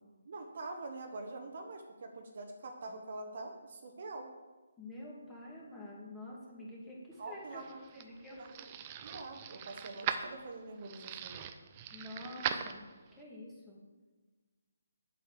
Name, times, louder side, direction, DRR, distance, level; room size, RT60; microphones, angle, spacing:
voice 1, 0.3-4.3 7.2-8.7 9.0-11.5, right 2 dB, 50° right, 4 dB, 1.2 m, -45 dB
voice 2, 4.8-8.4 11.9-12.8 13.2-13.8, left 1 dB, 10° left, -5 dB, 2.2 m, -48 dB
sound 1, 7.3-13.2, right 9 dB, 30° right, 0.6 m, -41 dB
8.0 x 7.7 x 5.0 m, 1.3 s
figure-of-eight pair, 150°, 0 cm